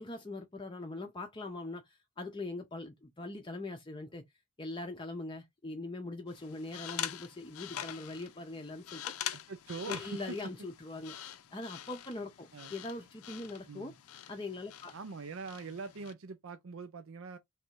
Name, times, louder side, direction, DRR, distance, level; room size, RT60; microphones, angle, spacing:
voice 1, 0.0-4.2 4.6-9.0 9.9-11.2 11.5-13.9 14.3-14.9, left 2 dB, 20° left, 0.6 m, -42 dB
sound 1, 6.3-16.1, left 11 dB, 85° left, 0.5 m, -44 dB
voice 2, 9.3-10.4 12.5-12.7 13.7-14.0 14.9-17.4, right 4 dB, 70° right, 0.5 m, -43 dB
3.3 x 2.6 x 4.5 m
head